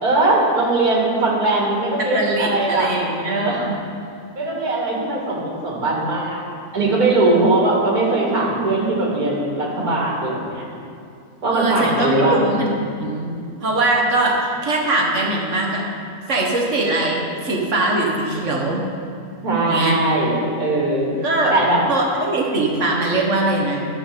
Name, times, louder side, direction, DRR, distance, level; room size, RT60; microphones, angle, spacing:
voice 1, 0.0-2.9 3.3-3.6 4.3-6.4 6.7-10.7 11.4-12.4 19.4-21.1 21.5-21.8, right 2 dB, 75° right, -3 dB, 2.6 m, -20 dB
voice 2, 2.0-3.7 11.5-15.8 16.3-18.8 19.7-20.0 21.2-21.6 21.9-23.9, right 2 dB, 55° right, -1 dB, 1.9 m, -21 dB
12.5 x 5.9 x 6.8 m, 2.4 s
omnidirectional pair, 1.6 m